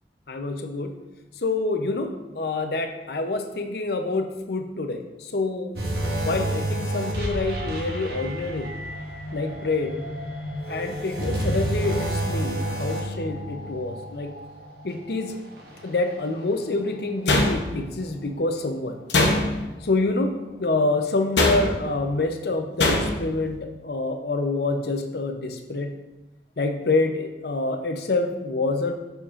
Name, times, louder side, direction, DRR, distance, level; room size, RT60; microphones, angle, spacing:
voice 1, 0.3-0.9 1.4-5.8 6.2-8.7 9.3-9.9 10.7-14.3 14.8-15.4 15.8-19.0 19.8-25.9 26.6-28.9, left 3 dB, 60° left, 6 dB, 0.6 m, -27 dB
sound 1, 5.8-17.2 17.6-17.8 18.4-18.5, right 1 dB, 60° right, 1.1 m, -30 dB
sound 2, 17.3-18.0 19.1-19.8 21.4-21.9 22.8-23.3, left 2 dB, 80° left, 0.9 m, -22 dB
7.0 x 6.7 x 2.5 m, 1.0 s
head